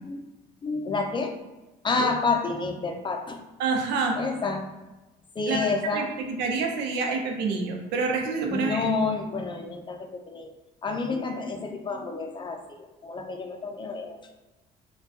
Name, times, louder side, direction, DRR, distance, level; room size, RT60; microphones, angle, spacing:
voice 1, 0.6-1.4 1.8-3.4 4.2-4.6 5.4-6.1 8.5-10.5 10.8-14.2, left 4 dB, 30° left, 4 dB, 0.4 m, -29 dB
voice 2, 3.6-4.2 5.5-8.9, right 4 dB, 85° right, 3 dB, 0.6 m, -27 dB
4.4 x 2.3 x 2.7 m, 1.0 s
cardioid pair, 110°, 17 cm